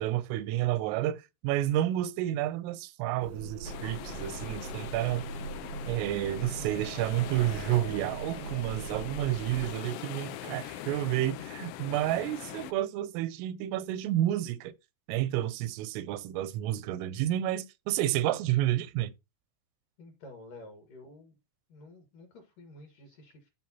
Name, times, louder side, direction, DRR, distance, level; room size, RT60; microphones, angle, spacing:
voice 1, 0.0-5.2 5.9-14.7 15.1-19.1, right 13 dB, 85° right, 3.3 m, -30 dB
sound 1, 3.2-9.7, right 4 dB, 70° right, 1.7 m, -41 dB
sound 2, 3.6-12.7, left 12 dB, 80° left, 2.6 m, -42 dB
voice 2, 20.0-21.3 21.7-23.5, left 2 dB, 55° left, 2.5 m, -50 dB
13.5 x 5.1 x 2.8 m
omnidirectional pair, 5.7 m